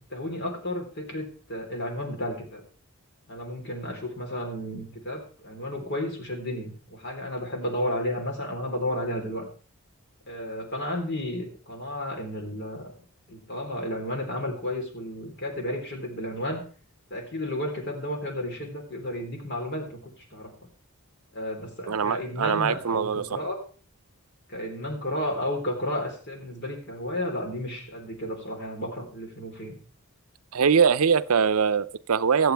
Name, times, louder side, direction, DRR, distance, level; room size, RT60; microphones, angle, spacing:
voice 1, 0.1-2.6 3.3-9.5 10.3-12.9 13.3-16.6 17.1-20.5 21.3-23.6 24.5-29.8, left 1 dB, 50° left, 2 dB, 3.7 m, -32 dB
voice 2, 21.9-23.3 30.5-32.5, right 6 dB, 85° right, 15 dB, 0.6 m, -22 dB
23.5 x 7.9 x 3.5 m, 0.43 s
head